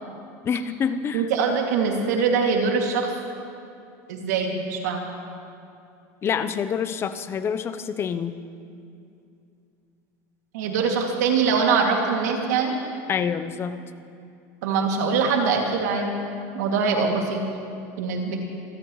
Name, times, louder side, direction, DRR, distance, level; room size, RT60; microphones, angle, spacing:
voice 1, 0.4-1.3 6.2-8.4 13.1-13.8, left 7 dB, 30° left, 11 dB, 0.7 m, -27 dB
voice 2, 1.1-3.1 4.1-5.0 10.5-12.8 14.6-16.1 16.5-17.4 18.0-18.4, right 5 dB, 85° right, 1 dB, 2.5 m, -23 dB
26.5 x 15.5 x 3.2 m, 2.5 s
supercardioid pair, 130°, 9 cm